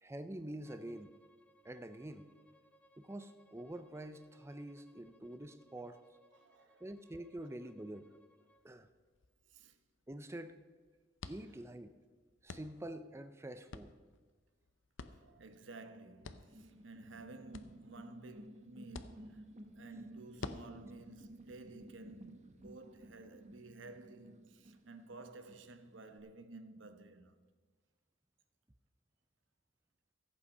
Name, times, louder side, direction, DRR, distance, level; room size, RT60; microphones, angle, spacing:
voice 1, 0.0-1.1 1.6-2.3 3.0-6.0 6.8-8.1 8.6-8.9 10.1-10.6 11.3-11.9 12.4-14.0, right 1 dB, 15° right, 0.5 m, -46 dB
Bowed string instrument, 0.6-8.7, equal, 5° left, 0.8 m, -69 dB
voice 2, 6.3-6.8 9.5-9.8 15.2-27.4, right 2 dB, 70° right, 1.0 m, -53 dB
sound 1, 8.6-22.7, left 3 dB, 75° left, 0.7 m, -54 dB
sound 2, 16.2-26.2, right 1 dB, 40° right, 0.9 m, -56 dB
14.5 x 8.4 x 5.5 m
head